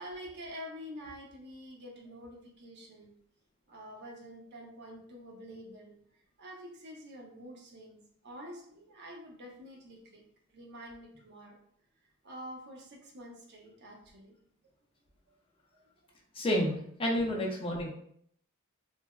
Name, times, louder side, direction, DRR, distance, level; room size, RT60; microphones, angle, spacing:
voice 1, 0.0-3.1 3.7-5.9 6.4-10.2 10.5-11.6 12.2-14.3 17.1-17.3, equal, 50° right, 0 dB, 0.6 m, -47 dB
voice 2, 16.3-17.9, equal, 25° left, -1 dB, 0.5 m, -30 dB
3.2 x 2.1 x 2.2 m, 0.65 s
head